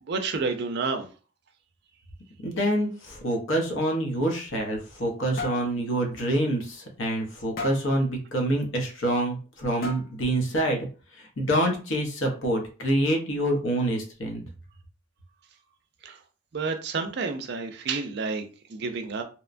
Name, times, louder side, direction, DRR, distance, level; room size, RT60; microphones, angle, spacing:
voice 1, 0.0-1.1 16.0-16.2 16.5-19.2, right 4 dB, 55° right, 0.4 m, -30 dB
voice 2, 2.4-10.9 11.2-14.4, right 1 dB, 75° left, 0.8 m, -26 dB
sound 1, 4.6-5.1 5.4-5.7 6.1-6.3 6.6-6.7 7.6-7.9 9.1-9.2 9.8-10.3, left 3 dB, 50° left, 0.5 m, -36 dB
2.9 x 2.1 x 2.5 m
head